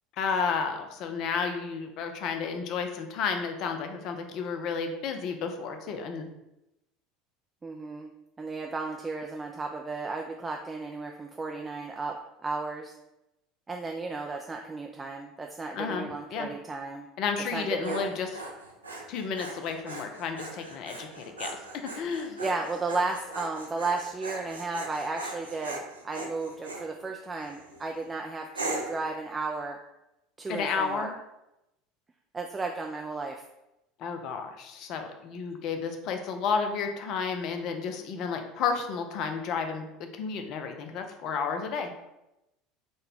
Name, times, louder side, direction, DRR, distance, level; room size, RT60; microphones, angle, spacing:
voice 1, 0.2-6.3 15.8-16.5 17.2-18.4 19.1-21.6 22.0-22.4 30.5-31.2 34.0-41.9, left 5 dB, 55° left, 6 dB, 0.5 m, -32 dB
voice 2, 7.6-8.1 8.4-12.2 12.4-12.9 13.7-17.1 17.5-18.0 22.4-29.8 30.4-31.1 32.3-33.4, right 3 dB, 20° right, 2 dB, 0.3 m, -34 dB
Dog, 17.4-26.9 27.4-27.8 28.5-29.1, right 2 dB, 90° right, 0.4 m, -39 dB
3.8 x 2.2 x 3.5 m, 0.90 s
hypercardioid pair, 70°, 0 cm